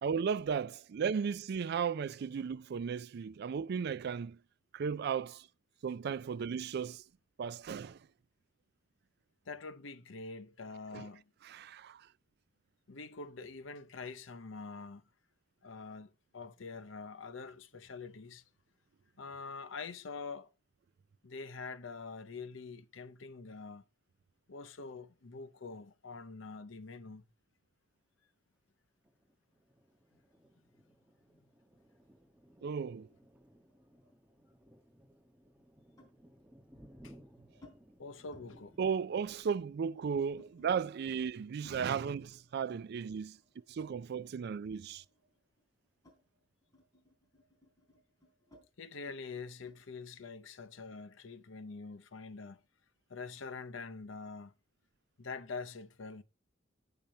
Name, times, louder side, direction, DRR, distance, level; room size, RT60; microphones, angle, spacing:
voice 1, 0.0-4.4 4.7-5.5 5.8-7.0 7.4-8.0 10.9-11.1 11.4-12.1 32.6-33.1 38.8-43.4 43.7-45.0, right 6 dB, 60° right, 0.4 m, -35 dB
voice 2, 9.5-11.2 12.9-15.0 15.6-18.4 19.2-20.5 21.2-23.8 24.5-27.2 37.0-37.1 38.0-38.8 48.8-52.6 53.1-54.5 55.2-56.2, left 4 dB, 90° left, 0.8 m, -45 dB
Thunder, 29.0-43.3 43.8-44.0 44.3-44.9, equal, 5° right, 1.2 m, -62 dB
sound 1, 33.1-34.7 36.0-36.2 37.0-37.8 38.1-38.5 38.7-40.9 41.6-44.5 44.8-49.8, left 1 dB, 20° left, 3.8 m, -63 dB
8.9 x 6.8 x 4.3 m
head